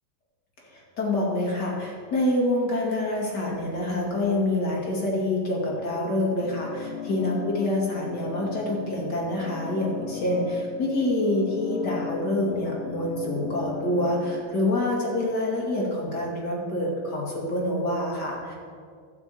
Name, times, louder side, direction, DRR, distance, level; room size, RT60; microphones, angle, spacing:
voice 1, 0.6-18.5, left 1 dB, 60° left, -2 dB, 2.9 m, -26 dB
sound 1, 6.4-14.4, left 9 dB, 85° left, 1.4 m, -38 dB
12.0 x 6.0 x 8.4 m, 2.1 s
omnidirectional pair, 2.1 m